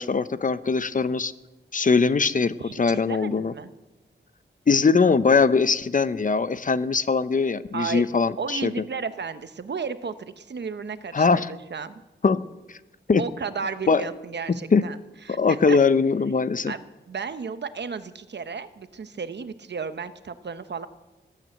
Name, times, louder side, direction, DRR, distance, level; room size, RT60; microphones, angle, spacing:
voice 1, 0.0-1.3 1.7-3.5 4.7-8.7 11.1-11.5 12.2-12.4 12.7-12.8 13.1-13.2 13.9-14.0 14.7-14.8 15.4-16.7, left 5 dB, 45° left, 14 dB, 0.7 m, -21 dB
voice 2, 2.6-3.7 7.7-8.0 8.4-12.0 13.2-15.0 15.2-15.8 16.7-20.9, right 5 dB, 65° right, 11 dB, 1.0 m, -33 dB
19.0 x 9.2 x 7.9 m, 1.1 s
wide cardioid pair, 105°, 19 cm